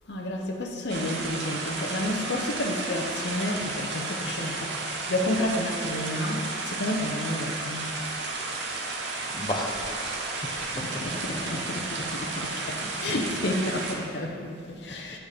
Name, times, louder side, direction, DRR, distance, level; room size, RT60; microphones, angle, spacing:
voice 1, 0.1-7.9 10.4-15.2, left 1 dB, 65° left, 1 dB, 0.8 m, -31 dB
sound 1, 0.9-14.0, right 3 dB, 70° right, 0.9 m, -33 dB
voice 2, 8.7-9.1 9.3-11.4 14.9-15.0, left 1 dB, 25° left, 0 dB, 0.7 m, -36 dB
8.1 x 6.1 x 3.5 m, 2.2 s
head